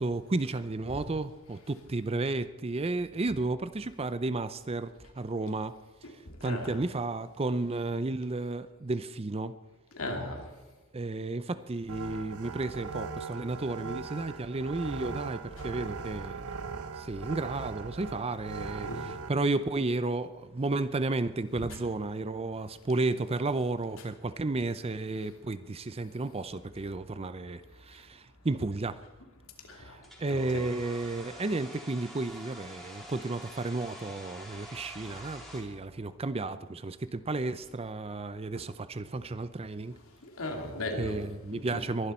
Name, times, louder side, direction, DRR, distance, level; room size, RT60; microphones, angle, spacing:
voice 1, 0.0-5.7 6.4-9.5 10.9-29.0 29.8-40.0 41.0-42.1, right 2 dB, 25° right, 0.5 m, -33 dB
voice 2, 6.4-6.8 9.9-10.5 18.8-19.0 21.6-21.8 29.7-30.0 30.3-30.6 40.4-41.2 41.5-41.8, left 1 dB, 65° left, 2.7 m, -36 dB
sound 1, 11.9-19.3, right 4 dB, 75° right, 1.0 m, -39 dB
Domestic sounds home sounds, 30.0-35.6, equal, ahead, 3.0 m, -47 dB
22.5 x 11.0 x 4.4 m
head